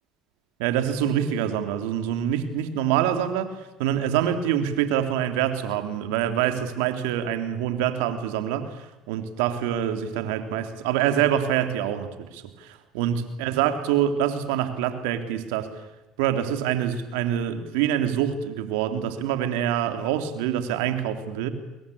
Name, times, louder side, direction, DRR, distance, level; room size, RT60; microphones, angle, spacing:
voice 1, 0.6-15.7 16.2-21.5, right 10 dB, 90° right, 9 dB, 3.4 m, -25 dB
26.5 x 22.5 x 8.7 m, 1.0 s
supercardioid pair, 95°, 0 cm